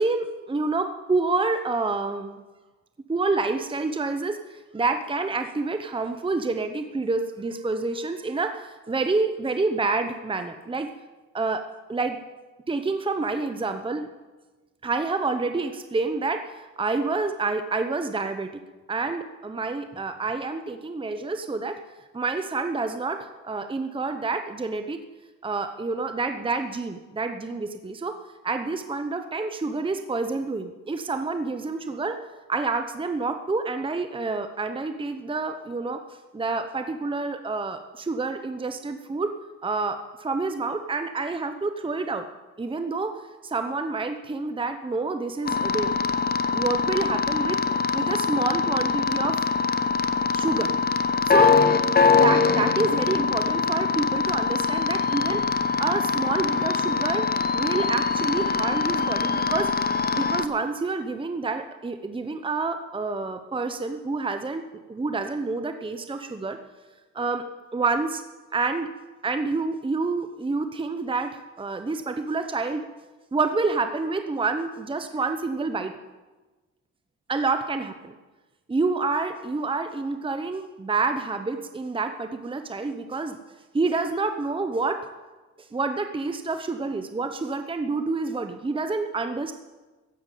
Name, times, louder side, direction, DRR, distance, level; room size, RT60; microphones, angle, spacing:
voice 1, 0.0-2.4 3.1-10.9 11.3-12.2 12.7-14.1 14.8-18.5 18.9-21.8 22.1-25.0 25.4-28.2 28.4-32.2 32.5-36.0 36.3-39.3 39.6-42.2 42.6-43.1 43.4-45.9 46.5-47.6 47.9-49.4 50.3-50.7 51.2-51.6 52.1-55.4 55.8-57.3 57.5-59.7 60.1-64.6 64.9-66.6 67.1-67.4 67.7-68.2 68.5-68.9 69.2-72.9 73.3-75.9 77.3-78.1 78.7-83.4 83.7-85.0 85.7-89.5, right 3 dB, 15° right, 8 dB, 0.9 m, -28 dB
sound 1, 45.4-60.4, left 5 dB, 30° left, 1.0 m, -23 dB
15.0 x 7.3 x 9.1 m, 1.2 s
cardioid pair, 90°, 30 cm